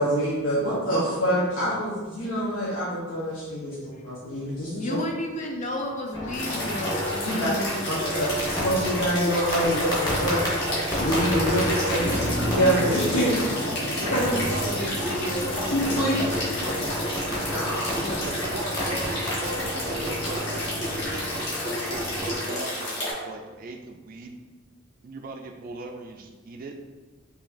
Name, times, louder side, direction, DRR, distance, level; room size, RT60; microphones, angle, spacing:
voice 1, 0.0-3.7 4.0-5.0 7.2-7.5 7.9-8.3 8.6-10.4 10.8-12.0 12.5-13.3 13.9-14.3 15.7-16.2 17.4-18.2, equal, 90° left, -8 dB, 0.9 m, -26 dB
voice 2, 4.7-8.6 14.0-16.3 17.9-18.5, left 1 dB, 40° left, 1 dB, 0.5 m, -34 dB
sound 1, 6.1-22.3, equal, 20° left, 1.0 m, -31 dB
sound 2, 6.3-23.1, left 1 dB, 60° left, 1.2 m, -31 dB
voice 3, 11.7-12.1 14.5-14.9 18.2-24.4 25.0-26.8, right 3 dB, 45° right, 3 dB, 0.3 m, -38 dB
Motor vehicle (road), 12.0-21.0, equal, 5° right, 0.6 m, -35 dB
4.9 x 2.7 x 2.5 m, 1.3 s
head